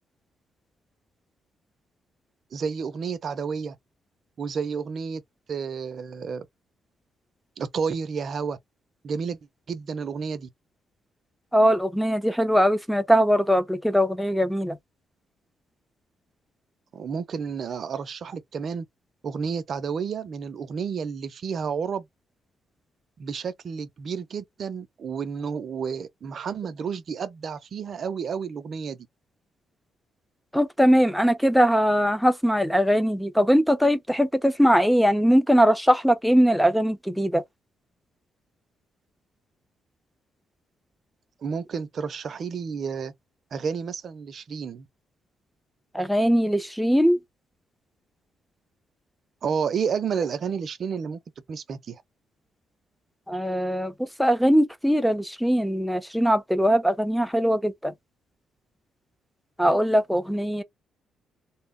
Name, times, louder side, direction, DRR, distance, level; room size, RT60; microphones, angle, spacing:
voice 1, 2.5-3.8 4.4-5.2 5.5-6.5 7.6-8.6 9.0-9.4 9.7-10.5 16.9-18.9 19.2-22.1 23.2-29.0 41.4-43.1 43.5-44.9 49.4-51.2 51.5-52.0, right 6 dB, 55° right, 0.5 m, -31 dB
voice 2, 11.5-14.8 30.5-37.4 45.9-47.2 53.3-53.9 54.2-57.9 59.6-60.6, equal, ahead, 0.5 m, -21 dB
2.0 x 2.0 x 3.5 m
cardioid pair, 90°, 0 cm